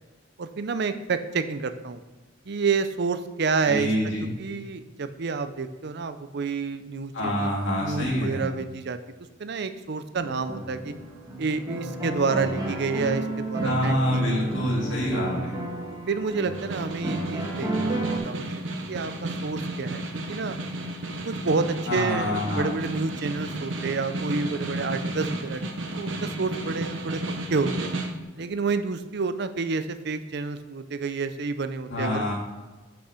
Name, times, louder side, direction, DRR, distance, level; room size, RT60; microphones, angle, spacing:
voice 1, 0.4-2.0 2.5-3.9 4.4-7.5 7.8-9.0 9.4-10.9 11.4-14.5 16.1-18.5 18.9-20.6 21.0-25.7 26.0-27.2 27.5-27.9 28.4-32.2, right 4 dB, 60° right, 11 dB, 0.6 m, -29 dB
voice 2, 3.6-4.3 7.1-8.5 13.6-15.6 21.9-22.7 31.9-32.3, left 1 dB, 75° left, -4 dB, 2.6 m, -26 dB
sound 1, 10.2-18.2, right 2 dB, 20° right, 1.6 m, -32 dB
Snare drum, 16.4-28.2, right 1 dB, 80° right, 1.0 m, -33 dB
6.4 x 5.6 x 5.7 m, 1.2 s
head